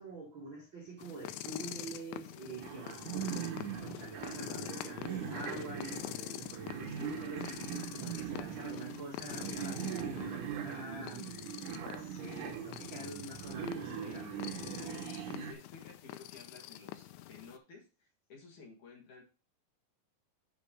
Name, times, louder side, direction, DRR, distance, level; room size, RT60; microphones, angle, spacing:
voice 1, 0.0-11.4 11.7-14.4, right 3 dB, 90° right, 1.0 m, -46 dB
sound 1, 1.0-17.6, left 14 dB, 90° left, 2.9 m, -46 dB
sound 2, 2.6-15.5, right 8 dB, 70° right, 1.9 m, -41 dB
voice 2, 15.0-19.2, left 4 dB, 55° left, 2.7 m, -54 dB
6.8 x 5.3 x 5.1 m
omnidirectional pair, 5.0 m